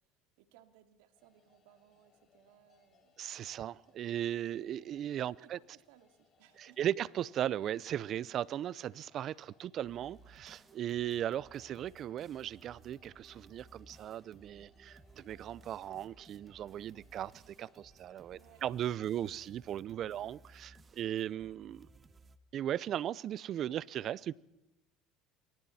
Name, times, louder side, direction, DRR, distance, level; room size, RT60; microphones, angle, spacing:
voice 1, 0.4-3.2 5.2-6.8 18.3-18.6 19.0-19.3 20.0-20.2, right 12 dB, 80° right, 2.7 m, -63 dB
sound 1, 1.2-20.7, left 6 dB, 45° left, 6.6 m, -71 dB
voice 2, 3.2-5.6 6.6-21.9 22.5-24.3, right 11 dB, 50° right, 0.7 m, -37 dB
sound 2, 9.8-22.4, right 4 dB, 25° right, 1.8 m, -60 dB
28.0 x 23.0 x 4.3 m
supercardioid pair, 100°, 0 cm